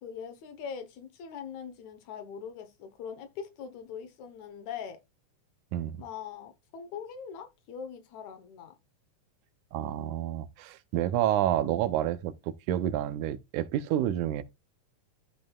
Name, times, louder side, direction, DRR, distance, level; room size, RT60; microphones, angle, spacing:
voice 1, 0.0-5.0 6.0-8.7, left 7 dB, 70° left, 2.4 m, -42 dB
voice 2, 9.7-14.4, right 12 dB, 90° right, 2.2 m, -29 dB
13.0 x 5.3 x 2.3 m
omnidirectional pair, 3.5 m